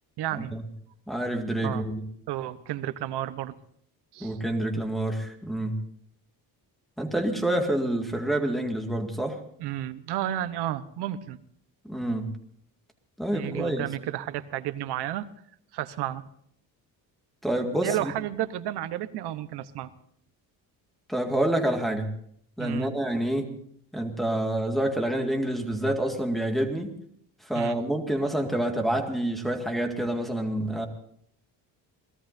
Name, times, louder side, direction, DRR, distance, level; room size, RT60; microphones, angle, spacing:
voice 1, 0.2-0.6 1.6-1.9 2.3-3.5 4.1-4.4 9.6-11.4 13.3-15.3 15.7-16.2 17.8-19.9 22.6-22.9 27.5-27.8, right 13 dB, 80° right, 12 dB, 1.0 m, -32 dB
voice 2, 1.1-2.0 4.2-5.8 7.0-9.4 11.9-12.3 13.2-13.9 17.4-18.1 21.1-22.1 22.6-23.5 23.9-26.9 27.4-30.9, right 1 dB, ahead, 2 dB, 2.0 m, -27 dB
28.5 x 18.0 x 2.7 m, 0.65 s
cardioid pair, 170°, 39 cm